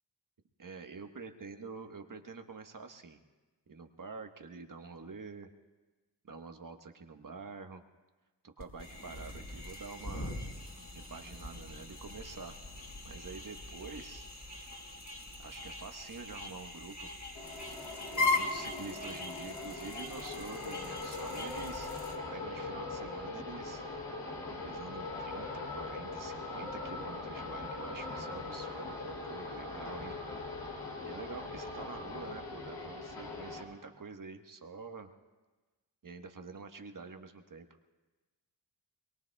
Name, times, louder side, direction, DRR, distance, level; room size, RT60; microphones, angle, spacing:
voice 1, 0.6-3.2 3.7-5.5 6.2-7.8 8.4-10.4 10.9-12.5 13.0-14.3 15.4-17.2 18.1-21.9 22.3-23.8 24.6-30.2 31.0-35.1 36.0-37.7, right 4 dB, 45° right, 6 dB, 1.4 m, -47 dB
sound 1, 8.6-22.2, left 3 dB, 40° left, 3.7 m, -39 dB
sound 2, 17.3-33.6, left 3 dB, 85° left, 2.9 m, -41 dB
23.5 x 22.0 x 2.4 m, 1.2 s
supercardioid pair, 40°, 44 cm